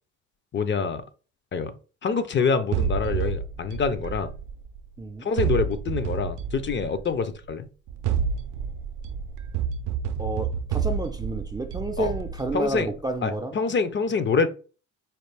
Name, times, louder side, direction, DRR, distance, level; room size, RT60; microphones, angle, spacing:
voice 1, 0.5-1.0 1.5-1.7 2.0-4.3 5.2-7.7 12.0-12.1 12.5-12.9 13.2-14.5, left 5 dB, 40° left, 0.5 m, -26 dB
sound 1, 2.7-4.9 5.4-7.2 7.9-13.0, right 7 dB, 80° right, 0.5 m, -29 dB
voice 2, 10.2-13.6, right 2 dB, 15° right, 0.3 m, -30 dB
4.3 x 2.3 x 3.3 m
cardioid pair, 90°, 30 cm